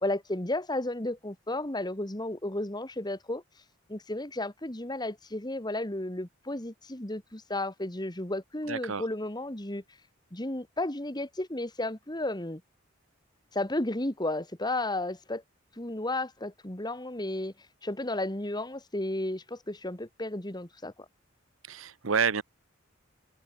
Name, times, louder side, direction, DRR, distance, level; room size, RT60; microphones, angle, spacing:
voice 1, 0.0-3.4 3.9-9.8 10.3-12.6 13.5-15.4 15.8-17.5 17.8-20.9, left 1 dB, 20° left, 2.0 m, -33 dB
voice 2, 8.6-9.1 21.6-22.4, right 6 dB, 80° right, 0.9 m, -29 dB
open air
head